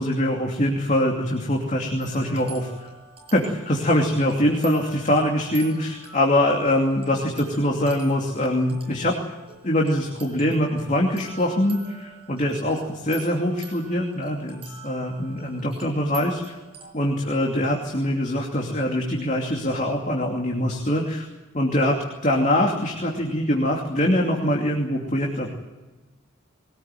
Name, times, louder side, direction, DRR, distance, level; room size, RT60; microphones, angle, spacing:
voice 1, 0.0-2.9 3.3-9.1 9.6-16.6 16.9-21.3 21.5-25.5, left 1 dB, 35° left, 0 dB, 2.7 m, -23 dB
sound 1, 2.0-16.9, right 5 dB, 30° right, 7.5 m, -46 dB
22.5 x 18.5 x 9.1 m, 1.2 s
head